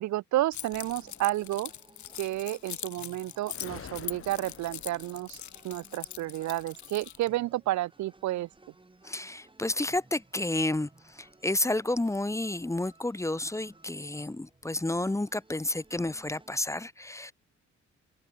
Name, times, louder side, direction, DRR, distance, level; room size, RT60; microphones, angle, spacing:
voice 1, 0.0-1.7 2.2-8.5, right 15 dB, 70° right, 0.5 m, -31 dB
Keys jangling, 0.5-7.3, left 11 dB, 70° left, 3.1 m, -42 dB
sound 1, 0.6-16.5, right 2 dB, 15° right, 6.2 m, -59 dB
sound 2, 0.7-1.9 3.5-6.3, left 7 dB, 45° left, 4.8 m, -50 dB
voice 2, 9.0-10.9 11.2-17.3, left 2 dB, 10° left, 0.9 m, -31 dB
open air
cardioid pair, 90°, 30 cm